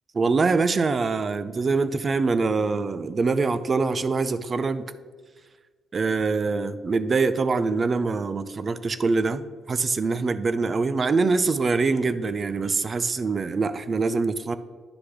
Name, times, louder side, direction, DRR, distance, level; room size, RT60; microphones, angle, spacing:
voice 1, 0.1-4.9 5.9-14.6, right 4 dB, 35° right, 13 dB, 0.4 m, -24 dB
9.7 x 3.3 x 5.8 m, 1.5 s
cardioid pair, 95°, 0 cm